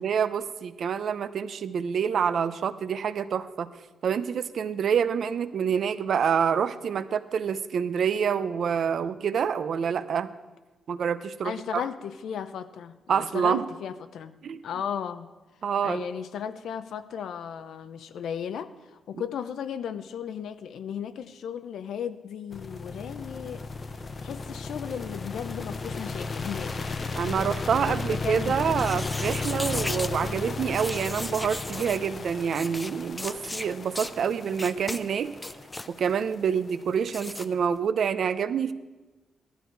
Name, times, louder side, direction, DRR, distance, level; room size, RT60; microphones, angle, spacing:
voice 1, 0.0-3.7 4.0-10.3 10.9-11.8 13.1-13.6 14.4-14.6 15.6-16.0 19.1-19.2 27.2-35.4 35.9-38.7, right 7 dB, 55° right, 13 dB, 0.6 m, -27 dB
voice 2, 11.4-14.3 14.6-15.3 15.8-23.6 24.2-26.7 27.8-28.6, left 8 dB, 80° left, 12 dB, 0.6 m, -35 dB
sound 1, 22.5-37.6, left 3 dB, 30° left, 0.8 m, -35 dB
sound 2, 28.7-30.1 30.7-32.0 32.5-32.9 33.2-33.7 34.0-34.1 34.6-35.0 35.4-35.9 37.1-37.5, left 2 dB, 10° left, 0.4 m, -35 dB
16.0 x 12.0 x 4.6 m, 1.2 s
wide cardioid pair, 160°, 0 cm